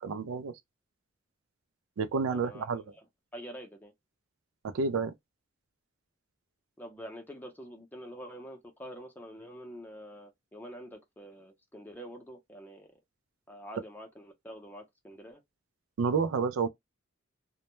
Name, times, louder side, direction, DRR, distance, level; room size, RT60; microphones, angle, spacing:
voice 1, 0.0-0.5 2.0-2.8 4.6-5.1 16.0-16.7, right 5 dB, 85° right, 0.4 m, -29 dB
voice 2, 2.3-2.7 3.0-3.1 3.3-3.9 6.8-12.9 13.5-15.4, equal, 10° left, 0.6 m, -46 dB
2.2 x 2.1 x 3.0 m
head